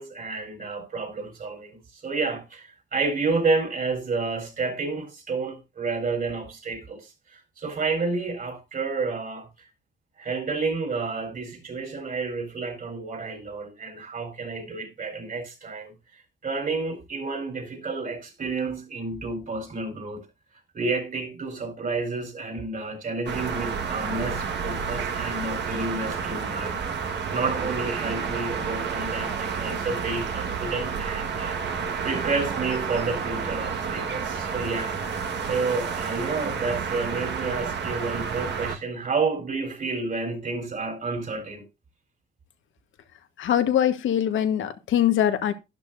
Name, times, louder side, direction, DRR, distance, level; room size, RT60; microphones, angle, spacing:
voice 1, 0.0-9.5 10.2-15.9 16.4-20.3 20.7-26.8 27.0-31.6 32.0-34.9 35.5-41.6, right 3 dB, 45° right, 4.2 m, -30 dB
sound 1, 23.3-38.8, right 6 dB, 60° right, 1.6 m, -30 dB
voice 2, 43.4-45.5, left 10 dB, 75° left, 1.4 m, -22 dB
12.0 x 11.0 x 2.6 m
cardioid pair, 90°, 20 cm